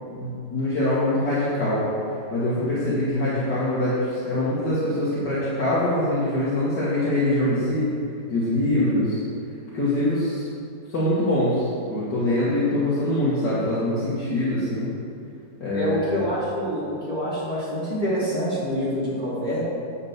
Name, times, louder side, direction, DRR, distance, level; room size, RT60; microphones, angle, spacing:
voice 1, 0.1-1.9 2.3-7.9 8.3-9.2 9.7-10.4 10.9-14.9 15.6-16.2, left 1 dB, 70° left, -11 dB, 2.4 m, -23 dB
voice 2, 15.7-19.6, equal, 25° left, -10 dB, 2.4 m, -26 dB
9.5 x 4.3 x 7.4 m, 2.5 s
omnidirectional pair, 1.9 m